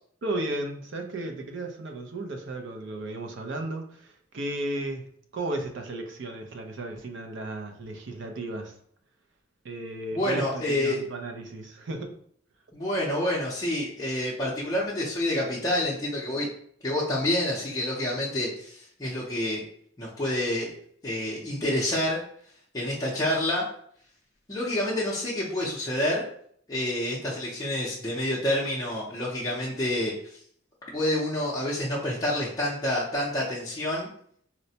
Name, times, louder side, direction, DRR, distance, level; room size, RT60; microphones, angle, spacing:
voice 1, 0.2-5.1 5.3-8.7 9.6-12.1, right 2 dB, 65° right, 4 dB, 0.5 m, -34 dB
voice 2, 10.1-11.0 12.7-16.5 16.8-19.6 20.0-20.7 21.0-22.2 22.7-23.6 24.5-26.2 26.7-30.1 30.9-34.1, left 1 dB, 20° left, -7 dB, 0.5 m, -28 dB
4.0 x 2.1 x 2.7 m, 0.63 s
head